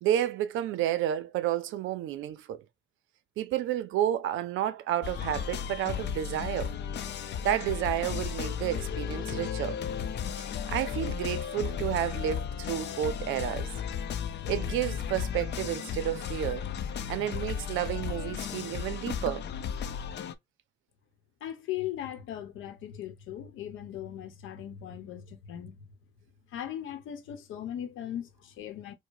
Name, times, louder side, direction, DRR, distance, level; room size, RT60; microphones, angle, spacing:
voice 1, 0.0-2.6 3.4-6.7 7.4-9.8 10.7-13.7 14.5-16.7 17.1-19.5, right 11 dB, 85° right, 0.5 m, -31 dB
sound 1, 5.0-20.3, left 8 dB, 60° left, 0.5 m, -34 dB
voice 2, 21.4-25.8 26.5-28.9, left 11 dB, 85° left, 0.9 m, -38 dB
4.6 x 2.1 x 2.6 m
cardioid pair, 90°, 20 cm